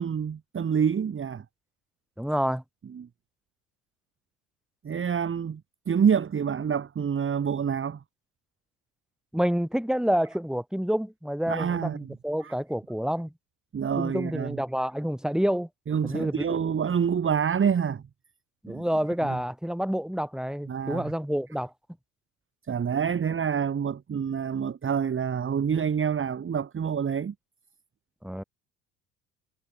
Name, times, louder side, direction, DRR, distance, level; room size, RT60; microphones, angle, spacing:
voice 1, 0.0-1.4 2.9-3.1 4.8-5.6 5.9-8.0 11.5-12.1 12.4-12.5 13.7-14.6 15.9-18.0 18.7-18.8 19.3-19.4 20.7-21.1 22.7-27.3, right 7 dB, 25° right, 1.6 m, -27 dB
voice 2, 2.2-2.6 9.3-13.3 14.0-15.7 16.0-16.6 18.6-21.7 28.2-28.4, equal, ahead, 4.6 m, -28 dB
hypercardioid pair, 65°, 45 cm